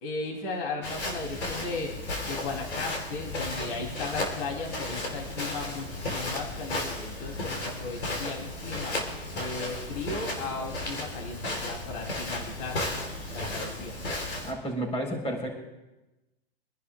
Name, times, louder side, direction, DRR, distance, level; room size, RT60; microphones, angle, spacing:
voice 1, 0.0-1.9 2.2-9.0 9.3-12.8 13.3-14.0, left 3 dB, 50° left, 0 dB, 3.6 m, -36 dB
Walk footsteps, 0.8-14.5, left 2 dB, 85° left, 3.9 m, -34 dB
voice 2, 14.4-15.5, right 1 dB, 20° left, 1 dB, 4.5 m, -31 dB
27.0 x 11.0 x 2.5 m, 1.0 s
hypercardioid pair, 115°, 32 cm